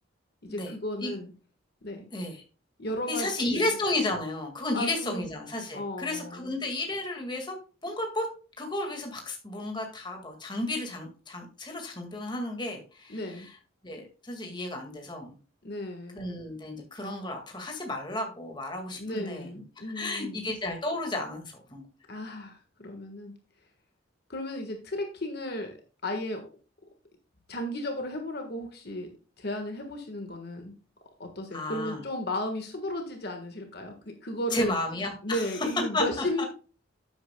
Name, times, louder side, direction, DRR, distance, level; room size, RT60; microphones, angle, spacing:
voice 1, 0.4-1.3 1.8-2.1 2.8-3.7 4.7-5.3 5.7-6.5 13.1-13.5 15.6-16.2 19.0-20.4 22.1-23.3 24.3-25.8 26.0-26.4 27.5-29.1 29.4-30.8 31.2-34.7 35.2-36.4, left 1 dB, 50° left, 4 dB, 1.4 m, -34 dB
voice 2, 2.1-2.4 3.1-7.6 7.8-8.3 8.6-13.5 13.8-15.3 16.1-19.5 19.8-21.8 31.5-32.0 34.5-35.5 35.9-36.4, left 2 dB, 20° left, 2 dB, 1.9 m, -33 dB
11.0 x 8.4 x 2.2 m, 0.35 s
head